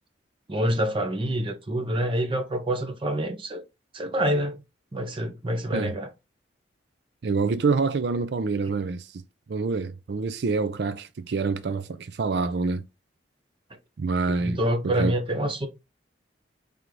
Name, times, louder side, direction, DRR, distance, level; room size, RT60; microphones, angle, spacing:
voice 1, 0.5-3.6 3.9-4.6 4.9-6.1 14.4-15.7, right 1 dB, 30° right, 0.7 m, -26 dB
voice 2, 7.2-9.2 9.5-12.8 14.0-14.6 14.8-15.1, right 4 dB, 60° right, 0.4 m, -26 dB
3.8 x 3.4 x 3.1 m
head